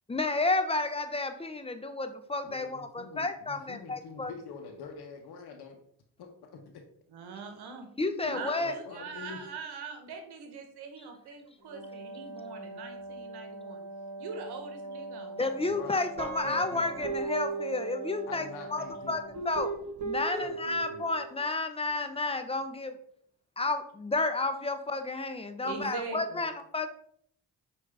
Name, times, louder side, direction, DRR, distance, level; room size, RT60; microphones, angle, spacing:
voice 1, 0.1-4.3 8.0-8.7 15.4-19.2 19.5-19.7 20.0-22.9 23.6-26.9, left 3 dB, 15° left, 8 dB, 0.5 m, -31 dB
voice 2, 2.4-5.8 6.2-6.8 8.2-9.4 15.7-16.8 18.3-19.2 20.3-21.0, left 5 dB, 75° left, 3 dB, 0.7 m, -45 dB
voice 3, 7.1-7.9 8.3-13.8 14.2-15.5 25.6-26.5, right 5 dB, 80° right, 5 dB, 0.9 m, -42 dB
Wind instrument woodwind instrument, 11.6-19.6, right 2 dB, 35° left, 1.3 m, -43 dB
Guitar, 16.2-18.6 19.3-21.3, right 4 dB, 45° right, 1.2 m, -37 dB
5.0 x 2.5 x 3.3 m, 0.64 s
supercardioid pair, 50°, 39 cm